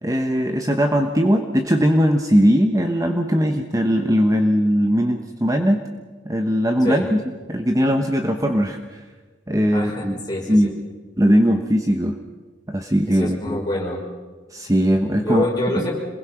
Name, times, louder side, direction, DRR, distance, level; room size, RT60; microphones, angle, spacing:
voice 1, 0.0-5.8 6.2-7.2 7.5-9.0 9.5-10.1 10.5-10.7 11.2-12.1 12.7-13.6 14.5-15.5, equal, 15° right, 5 dB, 1.1 m, -19 dB
voice 2, 9.7-10.7 13.1-14.0 15.2-15.9, left 1 dB, 20° left, -2 dB, 5.6 m, -26 dB
27.0 x 21.0 x 5.9 m, 1.3 s
head